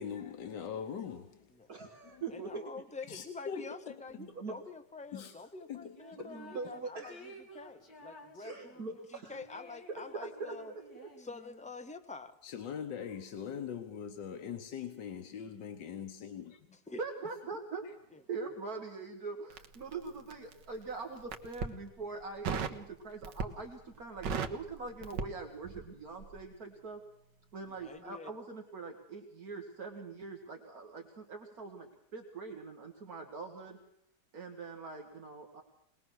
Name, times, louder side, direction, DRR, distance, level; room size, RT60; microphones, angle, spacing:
voice 1, 0.0-1.5 2.0-2.2 3.1-4.0 5.1-5.3 5.7-6.4 12.4-16.6, left 7 dB, 85° left, 6 dB, 1.7 m, -42 dB
voice 2, 1.7-2.6 4.2-4.6 6.3-7.3 8.4-9.3 9.9-11.1 17.0-27.0 27.5-33.8 34.3-35.6, right 4 dB, 60° right, 3 dB, 2.1 m, -43 dB
voice 3, 2.3-10.7 11.2-12.4 16.7-17.0 18.1-18.2 27.7-28.3, left 4 dB, 5° left, 8 dB, 0.5 m, -47 dB
sound 1, 6.0-6.8 7.1-11.7, equal, 60° left, 2.7 m, -54 dB
Crackle, 19.5-20.6 21.2-21.8 22.4-22.8 23.2-23.7 24.0-25.9 26.2-26.4, right 6 dB, 90° right, 1.8 m, -36 dB
21.5 x 19.5 x 6.3 m, 0.72 s
omnidirectional pair, 1.9 m